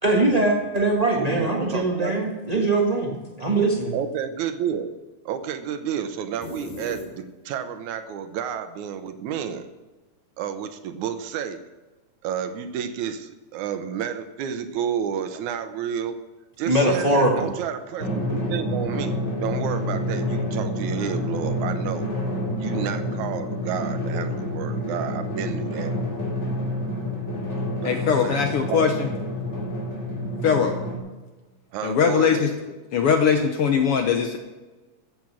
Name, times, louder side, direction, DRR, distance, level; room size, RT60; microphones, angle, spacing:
voice 1, 0.0-3.1 3.4-3.9 16.6-17.5, right 2 dB, 55° right, -1 dB, 0.4 m, -21 dB
voice 2, 1.2-2.3 3.9-4.9 5.3-9.7 10.4-11.6 12.2-16.2 16.6-22.1 22.6-26.0 27.9-29.1 31.7-32.5, right 8 dB, 75° right, 9 dB, 2.2 m, -30 dB
sound 1, 6.4-7.7, left 2 dB, 85° left, 3.8 m, -38 dB
Drum, 18.0-31.0, left 1 dB, 25° left, 2.3 m, -28 dB
voice 3, 27.8-29.1 30.4-30.8 31.8-32.5 32.9-34.4, left 7 dB, 70° left, 5 dB, 1.4 m, -21 dB
14.5 x 7.8 x 6.1 m, 1.2 s
omnidirectional pair, 3.5 m